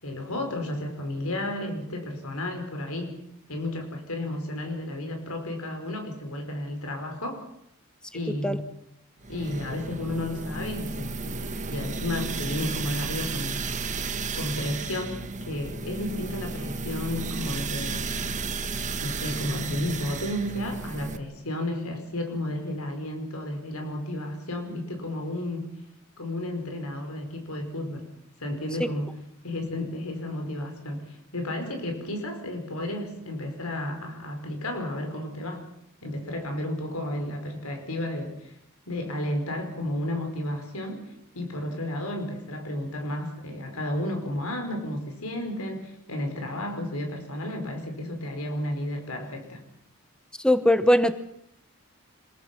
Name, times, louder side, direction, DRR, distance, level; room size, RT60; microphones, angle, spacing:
voice 1, 0.0-3.1 3.5-7.4 8.1-8.7 9.3-13.6 14.3-15.2 15.4-18.1 19.0-25.7 26.2-28.0 28.4-29.1 29.4-35.6 36.0-38.5 38.9-49.6, left 1 dB, 80° left, 4 dB, 4.8 m, -32 dB
sound 1, 9.2-21.2, right 3 dB, 35° right, 1.5 m, -33 dB
voice 2, 50.4-51.1, left 1 dB, 5° left, 11 dB, 0.9 m, -20 dB
26.0 x 21.5 x 6.1 m, 0.75 s
head